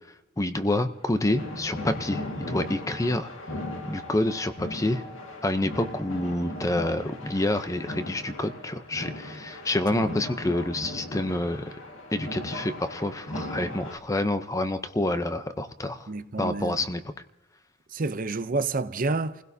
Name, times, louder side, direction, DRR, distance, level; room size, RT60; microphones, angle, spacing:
voice 1, 0.4-3.3 3.9-5.0 5.4-11.8 12.1-16.1 16.4-17.0, left 1 dB, 15° left, 0.6 m, -28 dB
sound 1, 1.1-14.0, left 1 dB, 75° left, 1.9 m, -38 dB
voice 2, 16.1-16.8 17.9-19.4, right 3 dB, 40° right, 0.6 m, -29 dB
29.5 x 16.5 x 2.7 m
head